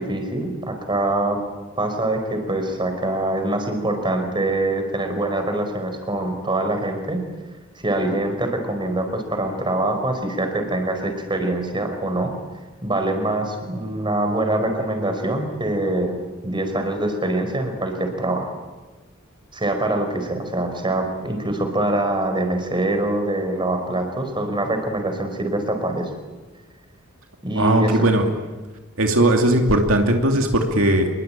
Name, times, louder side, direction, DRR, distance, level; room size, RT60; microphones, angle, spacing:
voice 1, 0.0-1.4 1.8-7.2 7.8-12.3 12.8-16.2 16.4-18.5 19.5-26.1 27.4-28.0, right 1 dB, 25° right, 5 dB, 5.0 m, -24 dB
voice 2, 27.6-28.2 29.0-31.1, right 1 dB, 70° right, 3 dB, 2.7 m, -18 dB
27.5 x 22.5 x 9.0 m, 1.3 s
head